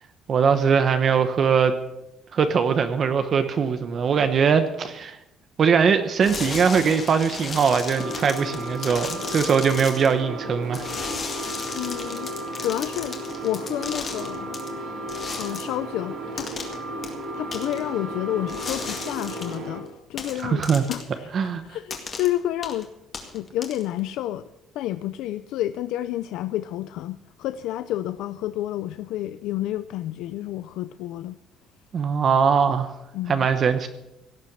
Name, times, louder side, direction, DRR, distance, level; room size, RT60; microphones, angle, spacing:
voice 1, 0.3-1.7 2.3-5.2 5.6-10.9 20.4-20.8 21.3-21.6 31.9-32.9 33.3-33.9, right 6 dB, 35° right, 9 dB, 0.9 m, -21 dB
sound 1, 6.2-10.1 10.7-14.7 15.1-15.7 16.4-16.8 17.0-17.1 17.5-17.8 18.5-19.6 20.2-21.1 21.9-22.3 22.6-22.8 23.1-24.0, left 5 dB, 25° left, 2.1 m, -35 dB
sound 2, 7.9-19.8, right 1 dB, 50° right, 3.6 m, -34 dB
voice 2, 11.8-12.3 12.6-13.2 13.4-14.6 15.4-16.5 17.3-20.6 20.9-22.9 23.3-24.5 24.7-31.4 33.1-33.5, left 13 dB, 75° left, 12 dB, 0.5 m, -30 dB
17.0 x 7.5 x 8.7 m, 0.91 s
cardioid pair, 175°, 0 cm